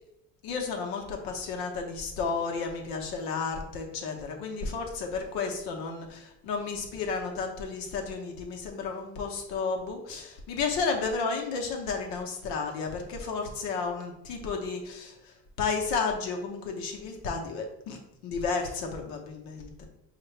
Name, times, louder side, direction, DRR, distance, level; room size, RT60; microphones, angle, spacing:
voice 1, 0.4-19.9, left 4 dB, 85° left, 2 dB, 1.0 m, -32 dB
5.8 x 2.5 x 3.2 m, 0.85 s
cardioid pair, 175°, 35 cm